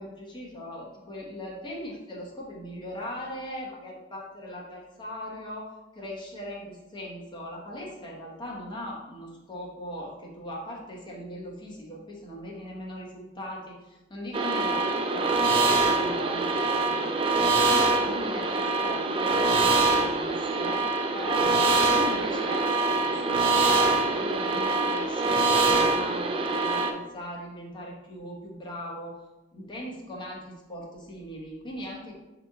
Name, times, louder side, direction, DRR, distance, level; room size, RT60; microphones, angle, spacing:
voice 1, 0.0-15.3 15.6-25.3 25.6-29.1 29.5-32.1, left 1 dB, 25° left, -3 dB, 0.9 m, -39 dB
sound 1, 14.3-26.9, right 3 dB, 30° right, 0.3 m, -24 dB
5.0 x 3.0 x 3.5 m, 1.0 s
head